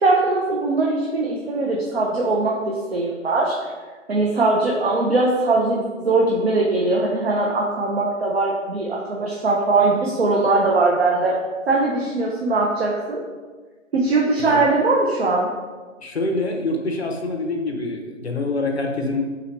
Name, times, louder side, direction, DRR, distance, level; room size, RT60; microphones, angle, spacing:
voice 1, 0.0-3.5 4.1-11.3 11.7-13.2 13.9-15.5, right 3 dB, 50° right, -2 dB, 0.6 m, -20 dB
voice 2, 16.0-19.3, left 2 dB, 55° left, 3 dB, 0.7 m, -25 dB
4.1 x 2.9 x 4.2 m, 1.3 s
hypercardioid pair, 180°, 39 cm